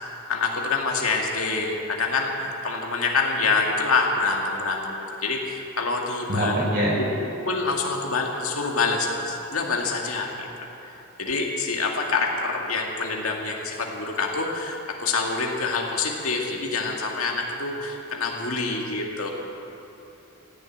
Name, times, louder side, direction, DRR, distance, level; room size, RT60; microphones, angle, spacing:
voice 1, 0.3-10.5 10.8-10.9 11.2-19.3, left 3 dB, 85° left, 0 dB, 2.0 m, -26 dB
voice 2, 6.3-7.0, equal, 45° right, -3 dB, 3.9 m, -23 dB
15.5 x 7.5 x 9.6 m, 3.0 s
head